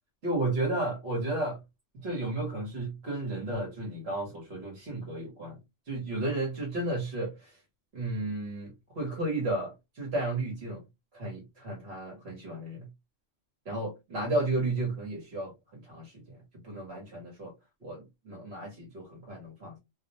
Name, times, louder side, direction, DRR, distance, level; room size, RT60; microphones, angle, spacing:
voice 1, 0.2-1.6 2.0-5.6 5.9-7.5 7.9-10.8 11.1-12.9 13.7-16.2 16.6-17.5 17.8-19.8, right 2 dB, 60° right, 1.1 m, -33 dB
2.6 x 2.0 x 2.7 m
omnidirectional pair, 1.3 m